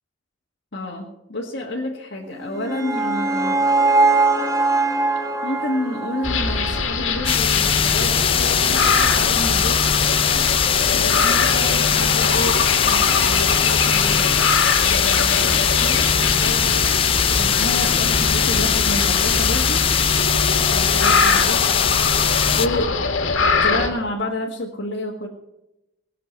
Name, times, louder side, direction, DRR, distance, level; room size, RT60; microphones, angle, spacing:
voice 1, 0.7-3.6 5.4-10.5 10.9-14.4 14.8-16.6 17.3-19.9 20.7-21.7 22.5-23.0 23.6-25.3, left 1 dB, 60° left, -2 dB, 1.7 m, -29 dB
sound 1, 2.3-7.5, right 3 dB, 15° right, 1.1 m, -21 dB
sound 2, 6.2-23.9, left 4 dB, 85° left, 1.9 m, -22 dB
sound 3, 7.3-22.7, left 8 dB, 30° left, 0.4 m, -20 dB
18.5 x 6.8 x 7.9 m, 0.92 s
head